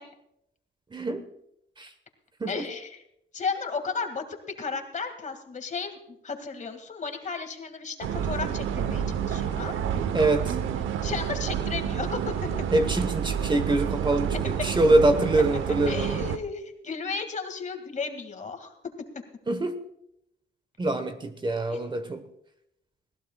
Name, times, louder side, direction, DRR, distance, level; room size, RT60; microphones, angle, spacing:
voice 1, 0.9-1.2 1.8-1.9 2.4-2.6 10.1-10.6 12.7-16.2 19.5-19.8 20.8-22.2, right 2 dB, 25° right, 9 dB, 1.2 m, -24 dB
voice 2, 2.5-3.0 3.3-5.9 6.2-9.7 11.0-12.3 15.9-18.7 21.7-21.8, left 5 dB, 40° left, 6 dB, 2.1 m, -34 dB
sound 1, 8.0-16.4, right 8 dB, 80° right, 0.9 m, -29 dB
20.5 x 15.5 x 2.3 m, 0.78 s
cardioid pair, 90°, 20 cm